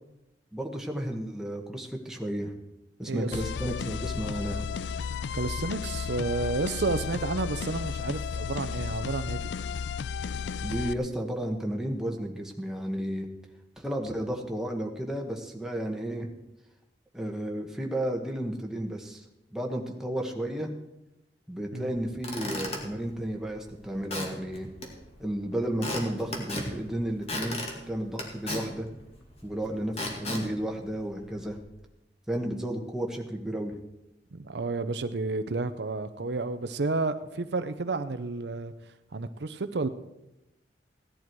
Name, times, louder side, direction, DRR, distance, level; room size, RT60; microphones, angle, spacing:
voice 1, 0.5-2.5 3.0-4.7 10.6-13.3 13.8-16.3 17.1-19.2 19.5-20.7 21.5-24.7 25.2-27.6 27.9-28.9 29.4-31.6 32.3-33.8, right 1 dB, 5° right, 1 dB, 1.4 m, -32 dB
voice 2, 3.0-3.4 5.3-9.5 21.7-22.0 34.3-38.7 39.1-39.9, right 3 dB, 70° right, 10 dB, 0.7 m, -31 dB
sound 1, 3.3-10.9, left 6 dB, 75° left, 0.4 m, -33 dB
Squeak / Wood, 22.0-31.6, left 1 dB, 35° left, 2.2 m, -38 dB
16.5 x 11.0 x 4.6 m, 0.91 s
head